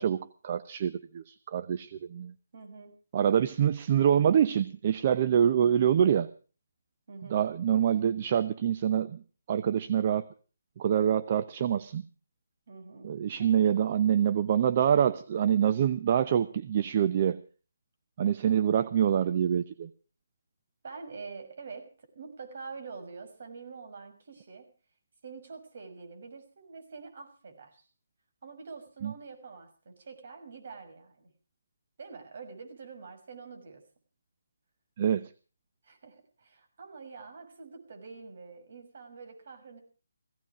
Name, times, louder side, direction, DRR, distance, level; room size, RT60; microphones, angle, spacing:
voice 1, 0.0-2.3 3.1-6.3 7.3-9.2 9.5-10.3 10.8-12.0 13.0-17.4 18.2-19.9 29.0-29.1 35.0-35.3, right 9 dB, 35° right, 14 dB, 0.7 m, -25 dB
voice 2, 2.5-3.0 7.1-7.4 12.7-13.5 20.8-24.7 25.2-27.9 28.4-31.3 32.0-33.8 35.8-39.8, right 4 dB, 55° right, 6 dB, 6.4 m, -46 dB
17.5 x 16.5 x 4.9 m, 0.38 s
hypercardioid pair, 160°, 0 cm